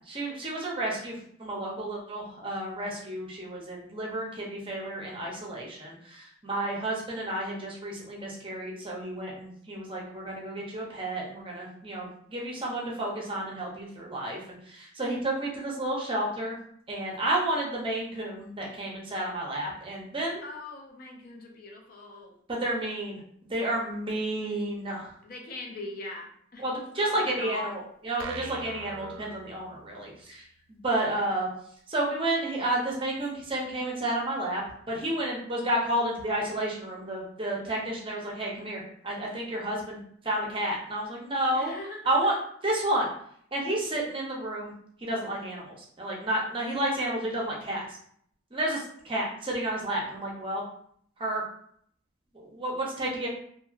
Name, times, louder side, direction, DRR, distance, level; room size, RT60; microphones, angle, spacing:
voice 1, 0.1-1.1 1.4-16.6 16.9-20.4 22.5-23.2 23.5-25.1 26.6-30.4 30.8-31.5 31.9-34.6 34.9-40.0 40.2-41.7 42.0-42.3 42.6-43.1 43.5-44.7 45.0-47.8 48.5-50.6 51.2-51.4 52.3-53.3, right 1 dB, 25° right, -3 dB, 0.6 m, -31 dB
voice 2, 20.4-22.4 25.2-26.6 26.9-27.7 41.5-42.2, left 2 dB, 45° left, 1 dB, 0.5 m, -41 dB
sound 1, 28.2-30.1, right 5 dB, 85° right, 0.3 m, -42 dB
2.8 x 2.7 x 2.4 m, 0.64 s
head